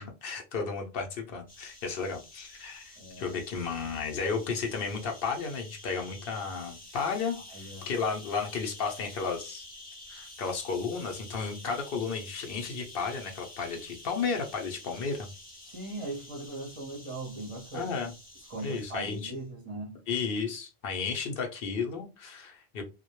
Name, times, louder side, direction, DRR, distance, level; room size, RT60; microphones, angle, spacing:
voice 1, 0.0-9.6 10.1-15.3 17.7-18.1 18.6-19.3 20.1-22.8, left 5 dB, 70° left, 0.7 m, -33 dB
sound 1, 1.5-19.4, left 1 dB, 10° left, 0.5 m, -49 dB
voice 2, 3.0-3.4 7.5-7.9 15.7-17.9 18.5-20.0, right 2 dB, 35° right, 0.6 m, -39 dB
2.1 x 2.1 x 2.8 m
omnidirectional pair, 1.1 m